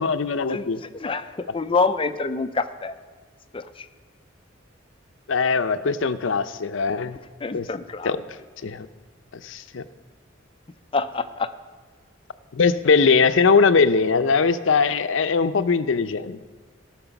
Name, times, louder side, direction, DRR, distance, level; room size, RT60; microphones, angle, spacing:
voice 1, 0.0-0.8 5.3-7.2 7.5-7.7 8.0-8.2 8.6-8.9 9.4-9.8 12.5-16.4, left 5 dB, 75° left, 11 dB, 0.6 m, -20 dB
voice 2, 0.9-3.0 3.5-3.9 7.4-8.2 10.9-11.5, left 4 dB, 25° left, 11 dB, 0.4 m, -26 dB
18.0 x 6.0 x 5.9 m, 1.4 s
head